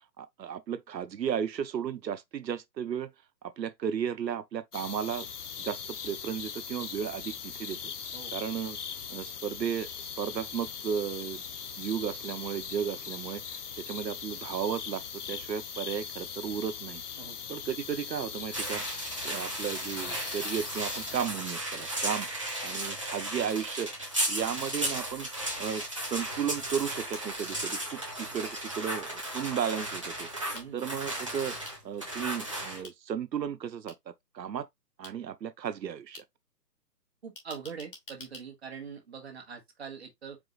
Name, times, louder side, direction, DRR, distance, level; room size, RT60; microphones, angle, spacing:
voice 1, 0.2-3.1 3.4-5.3 5.6-5.8 6.0-7.8 8.3-8.8 9.1-11.4 11.8-15.0 15.3-17.0 17.5-18.8 19.2-22.3 22.6-23.9 24.3-25.3 25.6-30.3 30.7-31.5 31.8-34.7 35.0-36.2, right 8 dB, 90° right, 0.8 m, -34 dB
sound 1, 4.7-21.3, left 7 dB, 65° left, 0.8 m, -40 dB
sound 2, 18.5-32.8, right 1 dB, 20° right, 0.7 m, -35 dB
sound 3, 21.4-21.5 22.5-22.6 23.6-23.7 24.6-24.7 25.7-25.8 27.1-28.1 28.4-29.6 30.6-30.7 31.6-31.8 32.8-32.9 33.9-34.0 35.0-35.1 36.1-36.2 37.4-38.4, left 2 dB, 35° left, 1.2 m, -48 dB
voice 2, 37.2-40.4, right 6 dB, 40° right, 1.3 m, -43 dB
4.7 x 2.5 x 4.0 m
hypercardioid pair, 170°, 49 cm